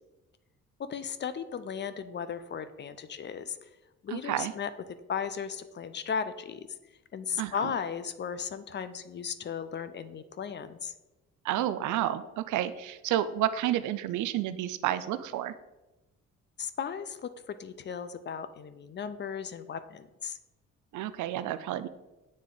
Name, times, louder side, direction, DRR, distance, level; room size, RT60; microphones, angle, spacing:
voice 1, 0.8-3.6 4.0-4.7 5.1-6.7 7.1-10.9 16.6-20.4, left 7 dB, 35° left, 12 dB, 0.4 m, -36 dB
voice 2, 4.1-4.5 7.4-7.7 11.4-15.5 20.9-21.9, right 12 dB, 80° right, 12 dB, 0.4 m, -30 dB
7.5 x 3.5 x 3.8 m, 1.0 s
cardioid pair, 90°, 30 cm